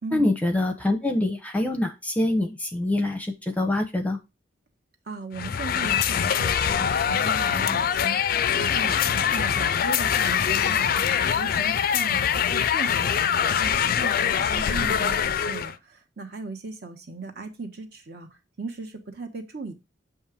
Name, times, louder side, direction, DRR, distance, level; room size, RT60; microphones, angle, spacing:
voice 1, 0.1-4.2, left 1 dB, 10° left, 0.6 m, -25 dB
voice 2, 5.1-11.0 11.3-18.3 18.6-19.7, right 4 dB, 55° right, 1.1 m, -37 dB
sound 1, 5.3-15.7, left 8 dB, 50° left, 0.3 m, -23 dB
7.1 x 2.9 x 4.9 m
head